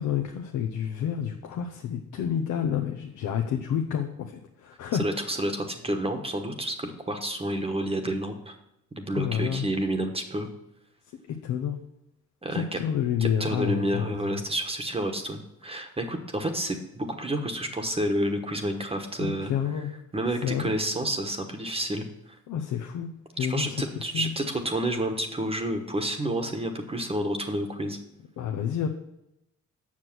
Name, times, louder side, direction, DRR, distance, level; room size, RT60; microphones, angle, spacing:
voice 1, 0.0-5.0 9.1-9.7 11.3-11.8 12.5-14.4 19.2-19.9 20.4-20.7 22.5-23.1 23.4-23.8 24.1-24.3 28.4-28.9, left 8 dB, 80° left, 5 dB, 0.8 m, -29 dB
voice 2, 5.0-8.5 9.0-10.5 12.4-12.8 13.2-19.5 20.1-22.4 23.4-28.0, right 1 dB, 20° right, 5 dB, 1.1 m, -29 dB
7.4 x 6.3 x 6.0 m, 0.84 s
cardioid pair, 90°, 30 cm